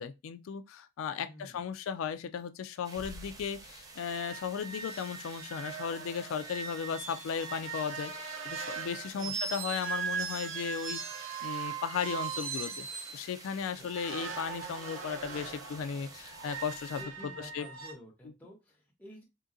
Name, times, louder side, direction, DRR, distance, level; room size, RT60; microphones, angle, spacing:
voice 1, 0.0-12.9 13.1-17.7, left 7 dB, 90° left, 0.3 m, -36 dB
voice 2, 1.2-1.7 9.1-9.4 13.7-13.9 17.0-19.2, equal, 10° left, 1.0 m, -50 dB
sound 1, 2.8-17.0, right 3 dB, 20° right, 0.3 m, -51 dB
Bass drum, 2.9-4.4, equal, 35° right, 1.0 m, -50 dB
sound 2, 3.2-3.3 3.6-3.8 4.0-13.2 13.9-17.9, right 6 dB, 80° right, 0.7 m, -40 dB
3.7 x 2.7 x 2.6 m
head